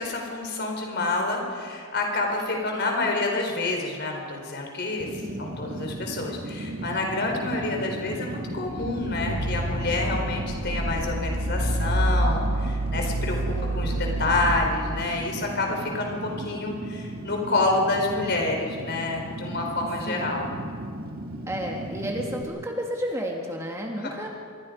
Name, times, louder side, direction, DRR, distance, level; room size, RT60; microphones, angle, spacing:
voice 1, 0.0-13.4 13.7-20.5 24.0-24.1, left 2 dB, 50° left, 2 dB, 4.5 m, -28 dB
Fire, 5.0-22.4, right 1 dB, 40° right, 1.9 m, -36 dB
sound 1, 8.7-14.7, right 1 dB, 80° right, 1.8 m, -27 dB
voice 2, 20.1-20.4 21.5-24.3, equal, 15° right, 1 dB, 1.8 m, -32 dB
26.5 x 22.5 x 5.3 m, 2.2 s
head